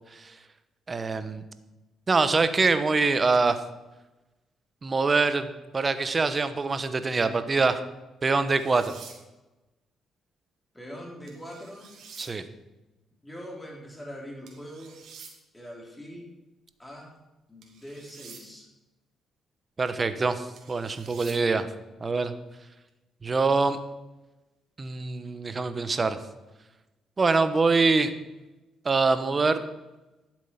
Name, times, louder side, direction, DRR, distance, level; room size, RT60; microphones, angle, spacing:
voice 1, 0.9-1.4 2.1-3.6 4.8-7.8 8.2-8.9 12.2-12.4 19.8-21.7 22.0-22.3 23.2-23.8 24.8-26.2 27.2-28.1 28.8-29.6, right 4 dB, 30° right, 11 dB, 1.0 m, -24 dB
sound 1, 8.5-9.2 11.3-12.3 14.5-15.3 17.6-18.4 20.6-21.4, right 6 dB, 70° right, 2.3 m, -48 dB
voice 2, 10.7-11.9 13.2-15.0 15.5-16.3 16.8-17.2 17.5-18.7, equal, 10° left, -1 dB, 3.5 m, -42 dB
11.5 x 7.5 x 5.8 m, 1.1 s
cardioid pair, 90°, 0 cm